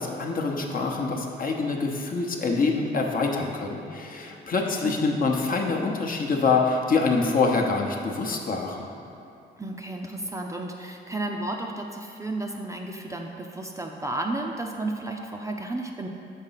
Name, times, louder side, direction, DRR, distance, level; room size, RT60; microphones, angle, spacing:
voice 1, 0.0-8.9, left 4 dB, 45° left, 1 dB, 0.9 m, -25 dB
voice 2, 9.6-16.1, right 2 dB, 15° right, 1 dB, 0.5 m, -33 dB
6.5 x 4.1 x 5.6 m, 2.8 s
cardioid pair, 90°, 20 cm